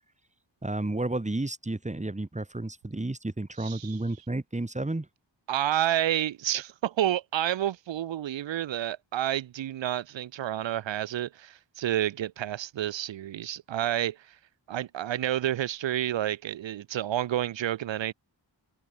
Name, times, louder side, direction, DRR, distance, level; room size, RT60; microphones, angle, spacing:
voice 1, 0.6-5.1, right 2 dB, 15° right, 1.7 m, -32 dB
voice 2, 3.6-4.0 5.5-14.4 14.7-18.1, right 12 dB, 75° right, 0.6 m, -29 dB
open air
wide cardioid pair, 70°, 46 cm